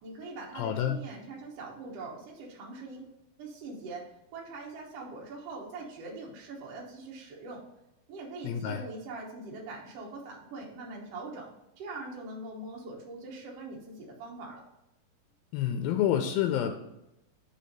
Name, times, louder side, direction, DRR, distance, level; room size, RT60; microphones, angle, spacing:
voice 1, 0.0-7.6 8.1-14.6, right 3 dB, 65° right, -2 dB, 1.6 m, -42 dB
voice 2, 0.5-1.0 8.4-8.8 15.5-16.8, left 10 dB, 85° left, 5 dB, 2.3 m, -28 dB
5.2 x 4.4 x 5.3 m, 0.88 s
omnidirectional pair, 4.2 m